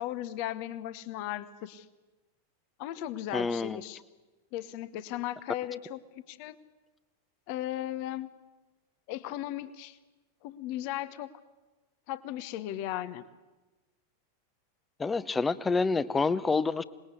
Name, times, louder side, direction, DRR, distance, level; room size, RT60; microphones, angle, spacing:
voice 1, 0.0-1.9 2.8-4.0 4.5-6.0 6.3-6.6 7.5-8.3 9.1-10.0 10.4-11.3 12.1-13.2, left 13 dB, 45° left, 15 dB, 1.1 m, -36 dB
voice 2, 3.3-3.8 15.0-16.8, left 4 dB, 15° left, 17 dB, 0.8 m, -27 dB
26.5 x 20.0 x 8.4 m, 1.2 s
figure-of-eight pair, 90°, 0 cm